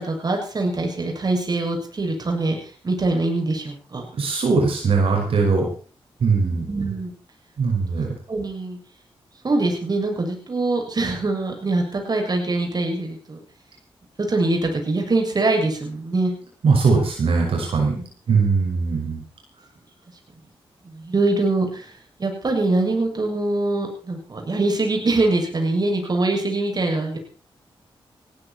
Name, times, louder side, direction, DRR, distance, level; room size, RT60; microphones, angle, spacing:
voice 1, 0.0-2.6 2.8-4.1 6.4-7.1 8.3-8.8 9.4-13.4 14.2-16.3 18.0-18.4 20.9-21.9 22.2-27.2, right 2 dB, 45° right, 2 dB, 7.3 m, -23 dB
voice 2, 4.1-5.7 6.2-6.6 7.6-8.1 16.6-17.9 18.3-19.2, right 4 dB, 75° right, 0 dB, 6.3 m, -20 dB
19.5 x 16.0 x 4.6 m, 0.41 s
cardioid pair, 65°, 10 cm